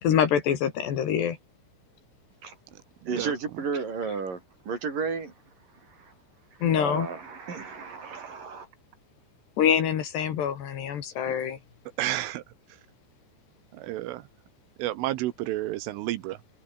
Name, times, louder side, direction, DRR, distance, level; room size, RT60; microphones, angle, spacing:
voice 1, 0.0-1.4 6.6-7.1 9.6-11.6, left 8 dB, 60° left, 4.3 m, -25 dB
voice 2, 3.1-5.3 5.9-6.1 6.6-8.7, right 5 dB, 45° right, 5.9 m, -33 dB
voice 3, 12.0-12.4 13.7-14.3 14.8-16.4, right 15 dB, 80° right, 3.6 m, -30 dB
open air
omnidirectional pair, 5.8 m